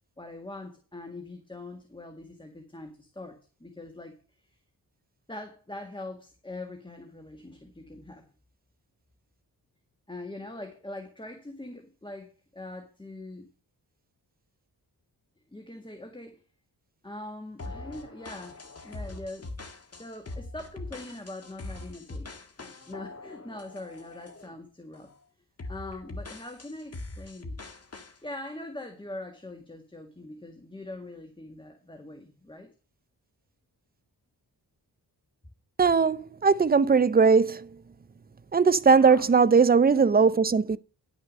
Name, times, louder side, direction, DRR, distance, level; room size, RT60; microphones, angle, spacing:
voice 1, 0.2-4.1 5.3-8.3 10.1-13.5 15.5-16.4 17.0-19.5 20.0-25.1 25.7-27.6 28.2-32.7 39.0-39.3, left 2 dB, 10° left, 1.8 m, -42 dB
sound 1, 17.6-24.5 24.9-25.2 25.6-28.2, left 2 dB, 35° left, 1.7 m, -42 dB
voice 2, 35.8-37.7 38.5-40.8, right 5 dB, 25° right, 0.5 m, -20 dB
11.0 x 6.3 x 6.4 m
wide cardioid pair, 95°, 40 cm